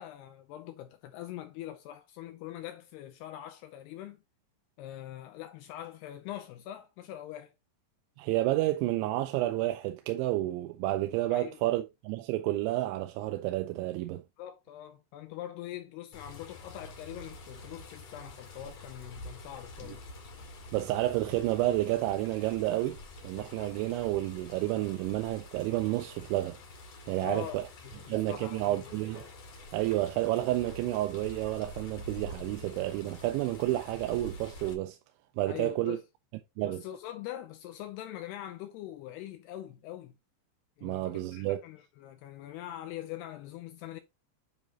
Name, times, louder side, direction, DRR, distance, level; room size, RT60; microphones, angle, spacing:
voice 1, 0.0-4.2 4.8-7.5 11.3-11.8 14.4-20.0 27.2-27.6 28.0-28.7 35.5-36.0 36.6-40.1 40.8-44.0, left 12 dB, 85° left, 2.4 m, -43 dB
voice 2, 8.2-14.2 19.8-20.0 20.7-23.0 23.2-26.6 27.1-27.6 28.1-29.3 29.7-35.0 35.4-36.0 36.6-36.8 40.8-41.6, right 16 dB, 85° right, 3.0 m, -30 dB
Water, 16.1-34.7, left 2 dB, 45° left, 2.7 m, -47 dB
9.6 x 5.1 x 2.9 m
omnidirectional pair, 5.3 m